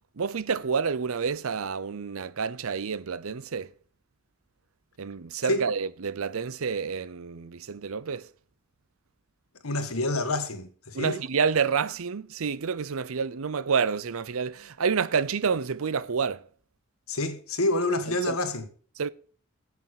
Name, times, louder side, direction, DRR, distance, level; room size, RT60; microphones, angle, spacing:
voice 1, 0.2-3.7 5.0-8.2 10.9-16.4 18.3-18.4 19.0-19.1, right 6 dB, 75° right, 0.6 m, -28 dB
voice 2, 9.6-11.2 17.1-18.7, left 2 dB, 80° left, 1.6 m, -28 dB
8.2 x 7.1 x 8.2 m
head